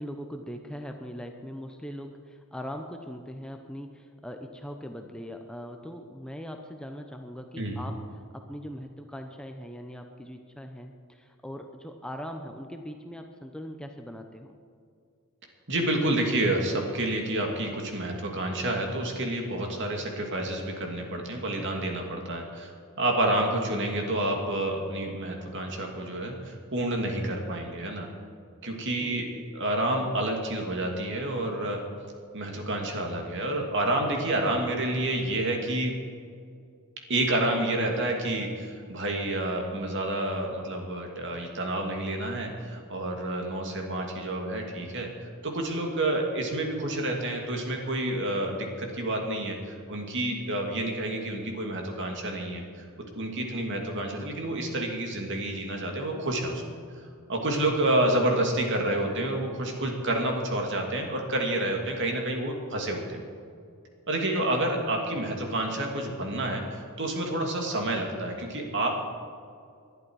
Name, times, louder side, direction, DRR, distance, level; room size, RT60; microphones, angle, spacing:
voice 1, 0.0-8.0 8.3-14.6 29.0-29.3 53.5-53.7, equal, 5° left, 4 dB, 0.7 m, -40 dB
voice 2, 15.7-22.7 23.0-28.1 28.6-29.3 29.5-31.8 32.3-35.9 37.1-45.1 45.4-52.6 53.1-56.8 57.3-63.2 64.1-68.9, right 1 dB, 55° right, 1 dB, 2.6 m, -29 dB
20.5 x 11.5 x 4.8 m, 2.3 s
head